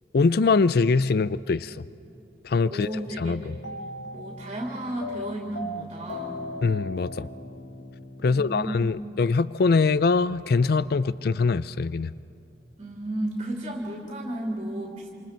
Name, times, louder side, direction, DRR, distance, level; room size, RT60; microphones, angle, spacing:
voice 1, 0.1-1.8 2.4-2.9 3.2-3.5 6.6-7.3 8.2-12.1, left 4 dB, 60° left, 17 dB, 0.4 m, -23 dB
voice 2, 2.7-3.8 4.1-6.5 8.2-9.0 12.8-15.1, right 1 dB, 35° right, -1 dB, 2.8 m, -33 dB
sound 1, 2.8-9.0, left 1 dB, 85° left, 2.0 m, -38 dB
28.0 x 27.5 x 4.5 m, 2.6 s
head